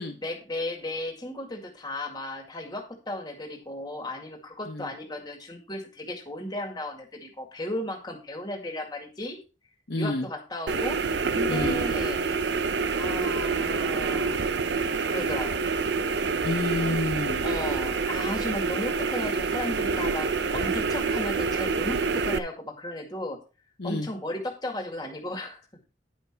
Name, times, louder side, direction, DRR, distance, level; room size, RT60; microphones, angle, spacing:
voice 1, 0.2-9.4 10.0-11.0 11.3-12.2 13.0-14.4 15.1-15.7 17.4-23.4 23.8-25.6, left 1 dB, 25° left, 3 dB, 2.1 m, -35 dB
voice 2, 9.9-10.3 11.5-11.8 16.4-17.4 23.8-24.1, left 2 dB, 60° left, 2 dB, 1.1 m, -29 dB
sound 1, 10.7-22.4, right 4 dB, 70° right, 0.6 m, -27 dB
10.0 x 5.8 x 4.5 m, 0.33 s
head